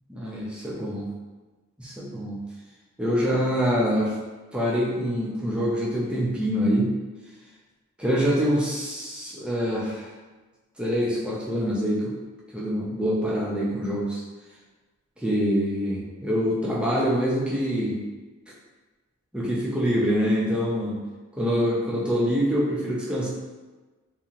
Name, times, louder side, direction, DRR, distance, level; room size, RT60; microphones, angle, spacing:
voice 1, 0.1-1.1 1.8-2.4 3.0-4.2 4.5-6.9 8.0-10.1 10.8-12.2 12.5-14.2 15.2-18.0 19.3-21.0 21.4-23.3, equal, 5° right, -5 dB, 0.4 m, -25 dB
2.6 x 2.4 x 2.9 m, 1.2 s
head